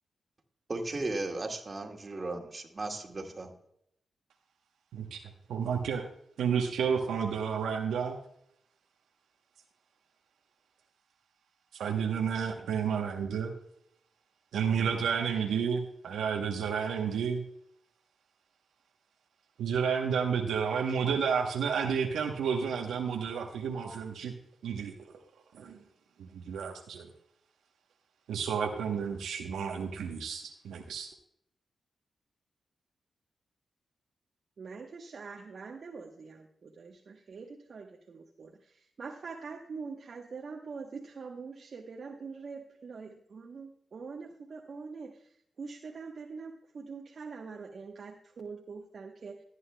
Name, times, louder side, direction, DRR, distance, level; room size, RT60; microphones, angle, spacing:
voice 1, 0.7-3.5, right 2 dB, 40° right, 3 dB, 1.9 m, -36 dB
voice 2, 5.5-6.0 6.4-8.2 11.7-13.5 14.5-17.4 19.6-24.3 24.6-24.9 25.5-25.8 26.2-27.1 28.3-31.1, right 7 dB, 90° right, 3 dB, 1.0 m, -31 dB
voice 3, 34.6-45.2 45.6-49.4, right 4 dB, 65° right, 1 dB, 1.0 m, -44 dB
14.0 x 9.4 x 2.2 m, 0.73 s
cardioid pair, 50°, 0 cm